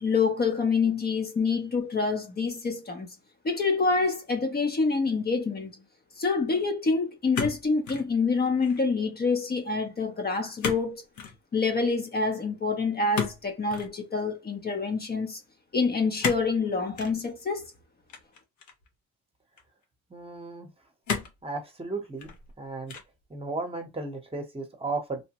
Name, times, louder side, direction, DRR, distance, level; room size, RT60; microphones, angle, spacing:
voice 1, 0.0-3.1 3.4-5.7 6.2-11.0 11.5-15.4 15.7-17.6, left 4 dB, 30° left, 0.7 m, -26 dB
sound 1, 7.3-8.1 8.5-8.9 10.6-10.9 11.1-11.4 13.1-13.9 16.2-16.5 17.0-17.2 18.1-18.9 19.6-19.7 21.1-21.4 22.0-22.5 22.9-23.2, left 6 dB, 70° left, 0.8 m, -33 dB
voice 2, 20.1-20.7 21.4-22.3 22.6-22.9 23.3-25.2, right 3 dB, 20° right, 0.9 m, -34 dB
2.9 x 2.1 x 2.9 m
cardioid pair, 90°, 30 cm